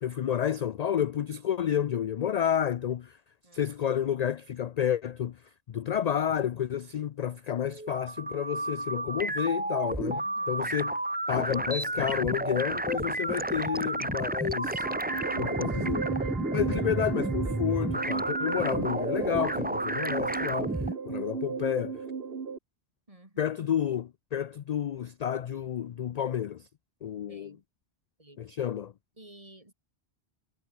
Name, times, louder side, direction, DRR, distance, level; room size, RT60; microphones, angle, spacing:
voice 1, 0.0-3.2 3.5-5.4 5.7-11.0 11.3-14.9 15.4-16.0 16.5-22.0 23.4-26.7 27.0-27.6 28.4-28.9, left 9 dB, 60° left, 0.4 m, -30 dB
voice 2, 3.4-4.1 10.1-10.7 15.2-16.4 23.1-23.5 27.3-27.6 28.2-28.4 29.2-29.7, right 1 dB, 30° right, 3.6 m, -54 dB
sound 1, 7.7-20.9, right 2 dB, 10° right, 0.6 m, -31 dB
sound 2, 14.6-22.6, right 5 dB, 60° right, 1.6 m, -35 dB
omnidirectional pair, 1.1 m